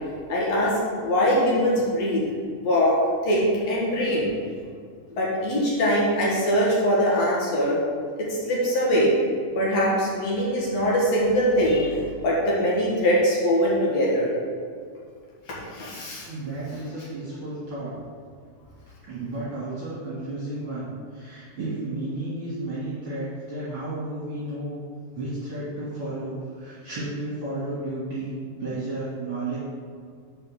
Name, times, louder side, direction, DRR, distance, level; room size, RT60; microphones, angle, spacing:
voice 1, 0.3-0.7 1.0-2.2 2.6-3.0 3.2-4.3 5.1-7.8 8.2-9.1 9.6-12.0 12.2-14.3 15.7-16.3, equal, 55° left, -5 dB, 2.3 m, -22 dB
voice 2, 16.3-18.0 19.0-20.9 21.1-24.8 25.1-29.6, right 2 dB, 45° right, -10 dB, 2.3 m, -32 dB
5.6 x 5.0 x 6.3 m, 2.1 s
omnidirectional pair, 4.0 m